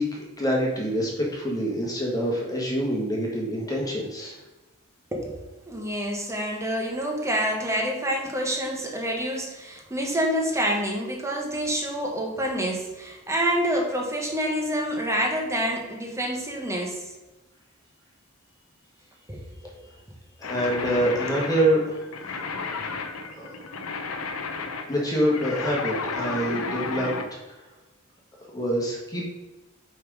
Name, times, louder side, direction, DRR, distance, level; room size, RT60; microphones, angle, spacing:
voice 1, 0.0-4.4 19.8-20.0 20.4-22.0 22.8-23.0 23.3-23.5 24.9-27.1 27.5-27.6 28.5-29.3, equal, 20° left, -3 dB, 1.6 m, -26 dB
voice 2, 5.1-17.1 19.3-19.8 21.3-21.4, equal, 15° right, 0 dB, 1.3 m, -27 dB
sound 1, 20.4-27.3, left 4 dB, 85° left, 0.8 m, -33 dB
5.9 x 5.4 x 4.9 m, 1.1 s
head